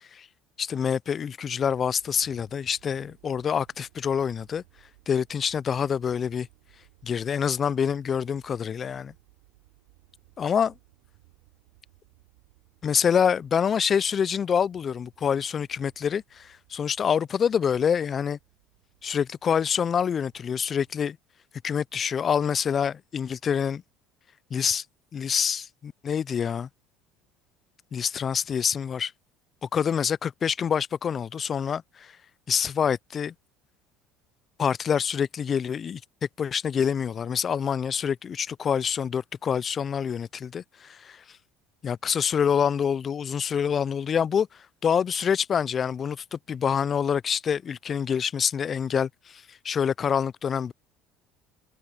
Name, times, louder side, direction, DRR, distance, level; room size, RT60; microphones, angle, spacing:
voice 1, 0.6-4.6 5.1-6.5 7.0-9.1 10.4-10.7 12.8-18.4 19.0-21.2 21.6-23.8 24.5-24.8 25.1-26.7 27.9-29.1 29.6-32.1 32.5-33.3 34.6-36.0 36.4-41.2 41.8-44.5 44.8-50.7, left 7 dB, 40° left, 0.4 m, -26 dB
sound 1, 1.6-21.0, right 26 dB, 85° right, 5.9 m, -61 dB
open air
supercardioid pair, 85°, 0 cm